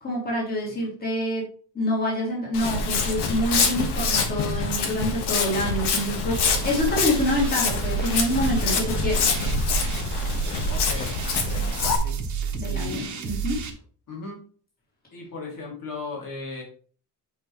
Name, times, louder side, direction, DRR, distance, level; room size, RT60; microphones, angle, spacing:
voice 1, 0.0-1.4 1.7-9.2 12.5-13.7, equal, 25° left, -4 dB, 2.7 m, -26 dB
Walk footsteps, 2.5-12.0, left 4 dB, 90° left, 1.6 m, -25 dB
sound 1, 6.3-13.7, right 6 dB, 45° right, 1.2 m, -32 dB
voice 2, 10.7-12.2 12.6-13.4 14.1-14.4 15.1-16.6, left 3 dB, 55° left, -2 dB, 2.9 m, -38 dB
8.4 x 5.0 x 3.2 m, 0.42 s
cardioid pair, 170°, 39 cm